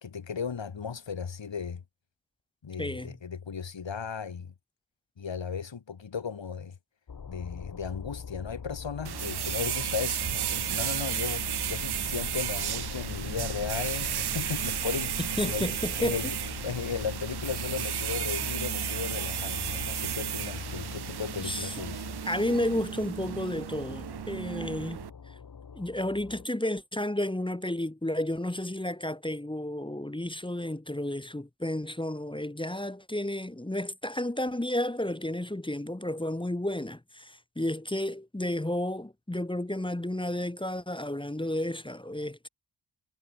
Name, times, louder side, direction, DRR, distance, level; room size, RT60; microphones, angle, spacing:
voice 1, 0.0-1.8 2.6-4.5 5.2-6.8 7.3-16.4 16.6-22.1, left 6 dB, 75° left, 2.4 m, -36 dB
voice 2, 2.8-3.2 15.2-16.1 21.4-21.7 22.2-25.0 25.7-42.5, left 1 dB, 10° left, 1.1 m, -32 dB
sound 1, 7.1-26.5, left 6 dB, 50° left, 1.1 m, -41 dB
sound 2, 9.0-25.1, right 10 dB, 60° right, 0.6 m, -34 dB
sound 3, 10.4-19.8, right 5 dB, 80° right, 6.4 m, -53 dB
wide cardioid pair, 70°, 45 cm